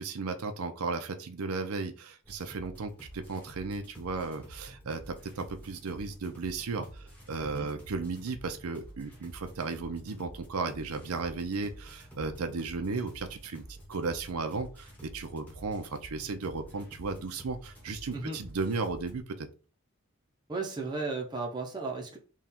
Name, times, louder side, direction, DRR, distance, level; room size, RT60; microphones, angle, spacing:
voice 1, 0.0-19.5, right 4 dB, 85° right, 7 dB, 0.6 m, -35 dB
sound 1, 2.2-19.2, right 1 dB, 5° left, 0.9 m, -49 dB
voice 2, 20.5-22.2, right 3 dB, 20° right, 0 dB, 0.6 m, -34 dB
3.6 x 2.3 x 4.2 m, 0.36 s
head